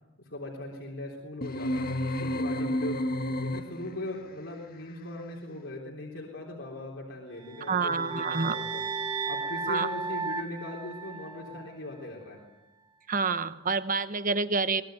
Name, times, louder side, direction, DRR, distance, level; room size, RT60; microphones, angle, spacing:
voice 1, 0.2-3.1 3.4-8.8 9.3-12.4, left 1 dB, 70° left, -2 dB, 3.7 m, -39 dB
sound 1, 1.4-4.0, left 1 dB, 50° left, 1.4 m, -30 dB
sound 2, 7.4-11.7, right 4 dB, 25° right, 1.5 m, -35 dB
voice 2, 7.7-8.6 9.7-9.9 13.1-14.8, right 4 dB, 45° right, 12 dB, 1.0 m, -28 dB
23.5 x 21.0 x 9.3 m, 1.1 s
head